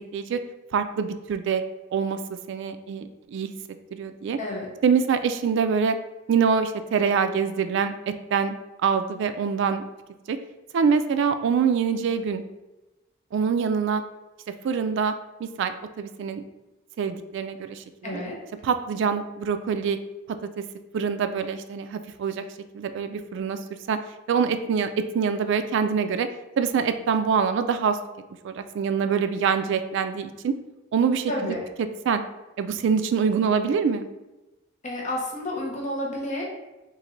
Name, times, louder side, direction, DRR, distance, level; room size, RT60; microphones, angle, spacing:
voice 1, 0.7-1.6 1.9-2.2 2.5-3.5 3.9-4.4 4.8-6.0 6.3-8.5 8.8-9.9 10.3-10.4 10.7-12.4 13.3-14.0 14.6-15.1 15.4-16.4 17.0-18.2 18.6-20.0 20.6-20.7 20.9-22.4 22.7-23.6 23.9-24.0 24.3-24.9 25.1-26.3 26.6-28.0 28.4-30.5 30.9-31.5 32.1-32.2 32.6-34.1, right 6 dB, 65° right, 9 dB, 0.3 m, -24 dB
voice 2, 4.4-4.7 18.0-18.4 31.3-31.6 34.8-36.4, left 1 dB, 40° left, -2 dB, 0.8 m, -30 dB
3.1 x 2.6 x 3.8 m, 1.0 s
head